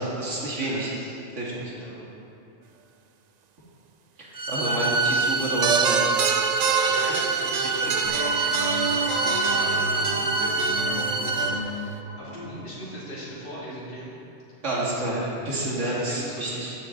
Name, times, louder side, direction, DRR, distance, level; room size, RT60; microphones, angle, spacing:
voice 1, 0.0-0.9 1.3-1.7 4.2-6.0 14.6-15.2 15.5-16.7, right 1 dB, 85° right, -5 dB, 2.3 m, -29 dB
voice 2, 0.6-1.2 1.7-2.1 4.4-4.7 6.9-14.1 15.0-16.6, equal, 50° left, -9 dB, 2.9 m, -39 dB
sound 1, 4.3-11.5, right 3 dB, 20° right, 0.7 m, -26 dB
sound 2, 5.6-12.0, right 7 dB, 65° right, 0.4 m, -27 dB
sound 3, 8.0-13.5, left 1 dB, 85° left, 1.6 m, -34 dB
14.5 x 8.6 x 3.9 m, 2.7 s
omnidirectional pair, 1.2 m